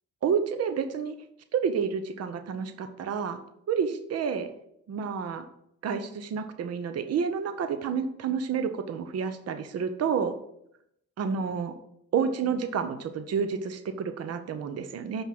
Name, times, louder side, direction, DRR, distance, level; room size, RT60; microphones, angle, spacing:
voice 1, 0.2-1.1 1.5-3.4 3.7-4.5 4.9-5.5 5.8-10.4 11.2-11.7 12.1-15.2, right 6 dB, 55° right, 9 dB, 0.8 m, -29 dB
6.1 x 5.3 x 6.0 m, 0.76 s
cardioid pair, 90°, 30 cm